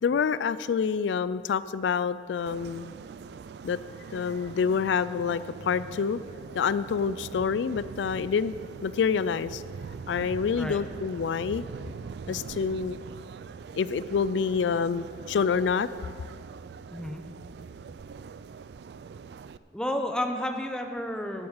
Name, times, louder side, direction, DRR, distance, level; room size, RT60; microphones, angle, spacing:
voice 1, 0.0-2.9 3.6-3.8 4.1-6.2 6.5-8.5 8.8-9.6 10.1-11.6 12.3-13.0 13.8-15.9, left 6 dB, 85° left, 16 dB, 0.3 m, -27 dB
sound 1, 2.5-19.6, right 5 dB, 65° right, 0.3 m, -43 dB
voice 2, 16.9-17.3 19.7-21.5, left 1 dB, 5° left, 4 dB, 0.8 m, -31 dB
11.5 x 7.8 x 7.2 m, 2.1 s
head